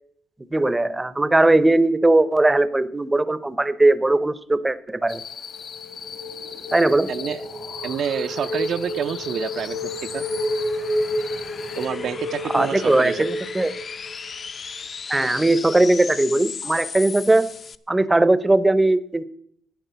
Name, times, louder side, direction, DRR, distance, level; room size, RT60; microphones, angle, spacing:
voice 1, 0.5-5.2 6.7-7.1 12.5-13.7 15.1-17.5 17.9-19.2, right 2 dB, 15° right, 16 dB, 0.6 m, -19 dB
sound 1, 5.1-11.9, left 7 dB, 65° left, 1.8 m, -39 dB
sound 2, 5.5-14.4, equal, 90° left, 3.4 m, -30 dB
sound 3, 5.9-17.8, left 5 dB, 45° left, 0.6 m, -38 dB
voice 2, 7.1-7.4 7.8-10.2 11.8-13.3, right 8 dB, 65° right, 11 dB, 0.5 m, -28 dB
10.5 x 9.7 x 6.7 m, 0.69 s
cardioid pair, 90°, 0 cm